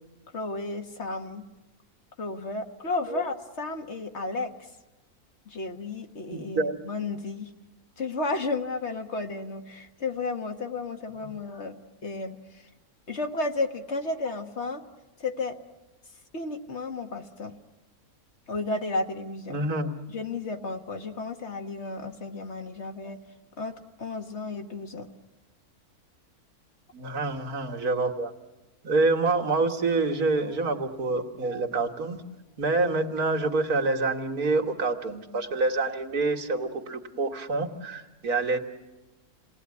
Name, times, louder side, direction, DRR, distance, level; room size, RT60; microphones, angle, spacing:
voice 1, 0.3-1.5 2.2-4.7 5.5-7.5 8.0-12.7 13.1-14.8 15.2-15.6 16.3-17.6 18.5-19.6 20.1-23.2 23.6-25.1, left 3 dB, 50° left, 5 dB, 1.5 m, -33 dB
voice 2, 6.3-6.8 19.5-19.9 26.9-28.3 28.8-32.2 32.6-38.6, right 3 dB, 75° right, 3 dB, 2.2 m, -27 dB
28.0 x 19.0 x 9.7 m, 1.1 s
omnidirectional pair, 1.6 m